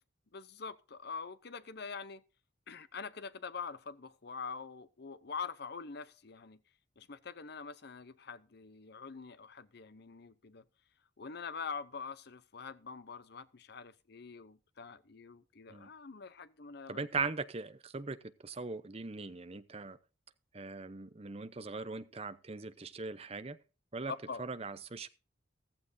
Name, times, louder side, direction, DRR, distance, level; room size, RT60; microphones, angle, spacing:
voice 1, 0.3-2.2 2.7-6.6 7.0-10.6 11.2-17.1 24.1-24.4, left 5 dB, 55° left, 0.7 m, -44 dB
voice 2, 16.9-18.2 18.4-20.0 20.5-23.6 23.9-24.1 24.4-25.1, right 4 dB, 30° right, 0.7 m, -40 dB
15.0 x 13.5 x 2.7 m
head